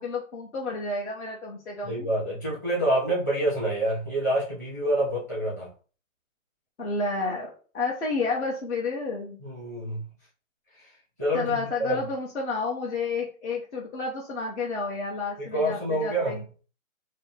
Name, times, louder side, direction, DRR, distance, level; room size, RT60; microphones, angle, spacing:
voice 1, 0.0-2.1 6.8-9.4 11.3-16.4, left 3 dB, 55° left, -3 dB, 1.2 m, -30 dB
voice 2, 1.8-5.7 9.4-10.1 10.8-10.9 11.2-12.0 15.4-16.4, right 1 dB, 15° left, -7 dB, 0.9 m, -27 dB
4.9 x 2.2 x 3.4 m, 0.38 s
hypercardioid pair, 175°, 41 cm